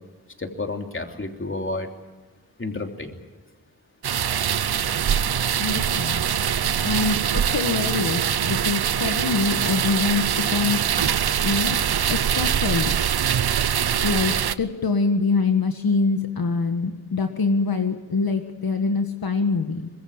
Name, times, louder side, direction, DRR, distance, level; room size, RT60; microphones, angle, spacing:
voice 1, 0.4-1.9 2.6-3.1 6.4-6.6, left 2 dB, 35° left, 4 dB, 3.1 m, -31 dB
sound 1, 4.0-14.6, right 9 dB, 80° right, 0.8 m, -23 dB
voice 2, 5.6-6.2 6.8-10.8 11.4-12.9 14.0-19.9, left 4 dB, 70° left, 5 dB, 1.7 m, -24 dB
24.0 x 21.5 x 7.3 m, 1.3 s
wide cardioid pair, 70°, 37 cm